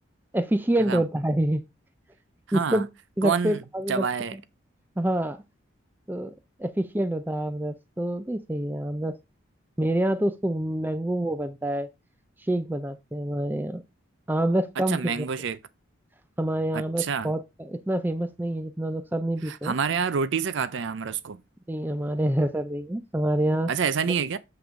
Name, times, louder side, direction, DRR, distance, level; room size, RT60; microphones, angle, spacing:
voice 1, 0.3-1.6 2.5-2.9 3.2-4.1 5.0-5.4 6.1-6.3 6.6-9.2 9.8-11.9 12.4-13.8 14.3-15.3 16.4-19.7 21.7-23.7, right 1 dB, 10° right, 0.4 m, -27 dB
voice 2, 2.5-2.8 3.2-3.6 3.9-4.4 14.9-15.6 16.7-17.3 19.4-21.4 23.7-24.4, right 6 dB, 65° right, 0.5 m, -27 dB
7.8 x 3.4 x 5.1 m
head